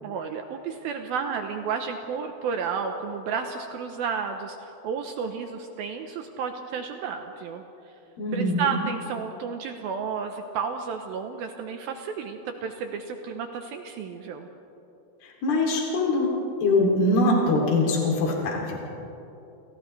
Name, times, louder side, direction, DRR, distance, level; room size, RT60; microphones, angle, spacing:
voice 1, 0.0-7.6 8.3-14.5, right 6 dB, 80° right, 5 dB, 2.2 m, -32 dB
voice 2, 8.2-8.8 15.2-16.3 16.6-18.9, left 2 dB, 60° left, -2 dB, 4.6 m, -23 dB
29.5 x 27.5 x 3.3 m, 2.9 s
omnidirectional pair, 5.2 m